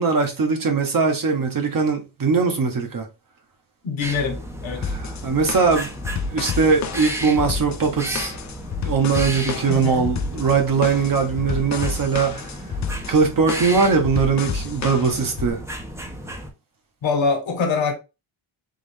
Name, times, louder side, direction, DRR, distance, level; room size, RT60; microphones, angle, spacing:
voice 1, 0.0-3.1 4.9-5.9 6.3-8.3 8.8-12.5 13.1-15.6, right 5 dB, 40° right, 1.1 m, -21 dB
voice 2, 3.8-4.9 9.7-10.1 17.0-17.9, left 4 dB, 65° left, 1.4 m, -24 dB
sound 1, 4.0-16.5, equal, 5° right, 0.6 m, -34 dB
sound 2, 4.8-15.5, left 5 dB, 35° left, 0.5 m, -30 dB
3.8 x 3.0 x 3.4 m
wide cardioid pair, 135°, 49 cm